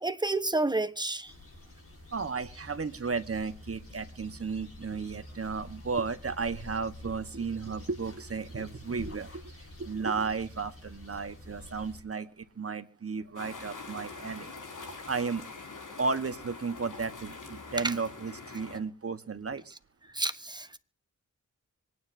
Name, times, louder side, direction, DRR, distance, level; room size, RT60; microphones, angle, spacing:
voice 1, 0.0-1.3 17.8-17.9 20.1-20.8, right 2 dB, 15° right, 1.2 m, -30 dB
sound 1, 1.3-12.0, left 1 dB, 45° left, 6.1 m, -48 dB
voice 2, 2.1-9.4 9.8-14.5 15.1-15.5 16.0-19.6, right 4 dB, 45° right, 1.4 m, -34 dB
sound 2, 13.3-18.8, left 4 dB, 75° left, 4.8 m, -44 dB
26.0 x 9.7 x 2.8 m
cardioid pair, 55°, 32 cm